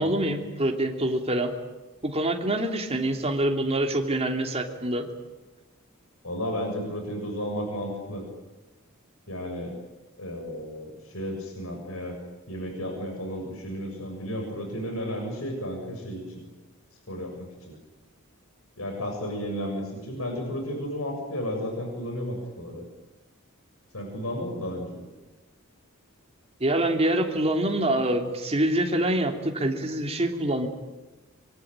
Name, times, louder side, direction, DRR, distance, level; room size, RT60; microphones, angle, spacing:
voice 1, 0.0-1.5 2.0-5.1 26.6-30.7, right 1 dB, 30° right, 3 dB, 3.2 m, -25 dB
voice 2, 6.2-8.2 9.3-9.7 10.2-12.2 12.5-16.4 17.1-17.7 18.8-22.8 23.9-25.0, equal, 85° left, 2 dB, 7.0 m, -33 dB
25.5 x 23.5 x 9.1 m, 1.1 s
head